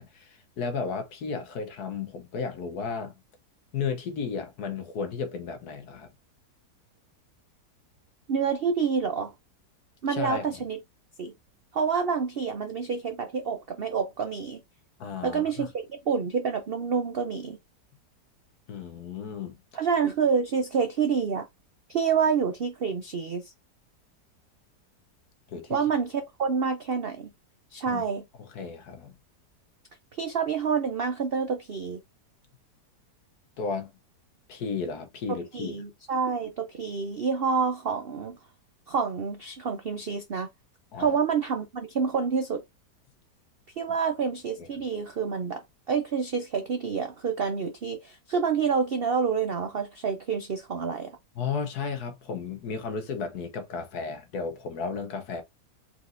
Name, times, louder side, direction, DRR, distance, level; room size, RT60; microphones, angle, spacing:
voice 1, 0.0-3.2 3.7-6.1 10.1-10.5 15.0-15.7 18.7-19.6 25.5-25.8 27.9-28.0 28.4-29.1 33.6-33.9 34.5-35.8 40.9-41.2 44.6-44.7 51.3-55.4, left 5 dB, 65° left, 1.3 m, -34 dB
voice 2, 8.3-9.3 10.0-10.8 11.2-11.3 11.7-14.6 15.2-17.6 19.7-21.5 21.9-23.5 25.7-27.3 27.7-28.2 30.2-32.0 35.3-38.4 38.9-40.5 41.0-42.6 43.8-51.1, right 6 dB, 80° right, 0.5 m, -28 dB
4.4 x 3.9 x 2.5 m
omnidirectional pair, 1.8 m